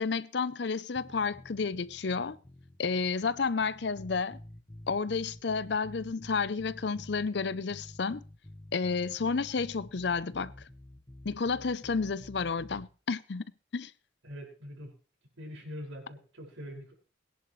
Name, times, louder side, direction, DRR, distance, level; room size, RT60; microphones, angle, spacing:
voice 1, 0.0-2.4 2.8-4.4 4.9-8.2 8.7-10.5 11.2-13.5 13.7-13.9, left 4 dB, 60° left, 0.6 m, -31 dB
sound 1, 0.9-12.9, left 1 dB, 20° left, 1.2 m, -50 dB
voice 2, 14.2-14.9 15.4-16.9, equal, 90° right, 5.6 m, -43 dB
22.0 x 10.5 x 3.2 m
head